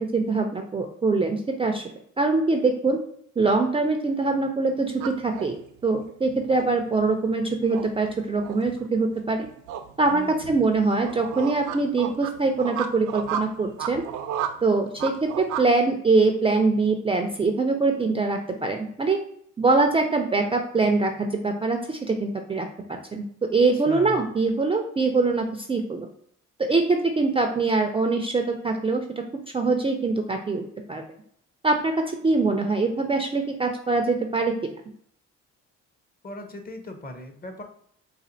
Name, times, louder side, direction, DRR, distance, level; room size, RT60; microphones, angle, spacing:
voice 1, 0.0-1.8 2.2-3.0 3.4-9.5 10.0-14.0 14.6-19.2 19.6-22.7 23.1-23.2 23.5-26.1 26.6-29.2 29.5-31.0 31.6-34.5, right 3 dB, 20° right, 4 dB, 0.3 m, -23 dB
sound 1, 4.9-15.7, right 8 dB, 85° right, 0.5 m, -34 dB
voice 2, 10.1-10.6 23.9-24.3 36.2-37.6, left 1 dB, 30° left, 5 dB, 0.7 m, -38 dB
4.1 x 2.4 x 2.6 m, 0.66 s
cardioid pair, 90°, 30 cm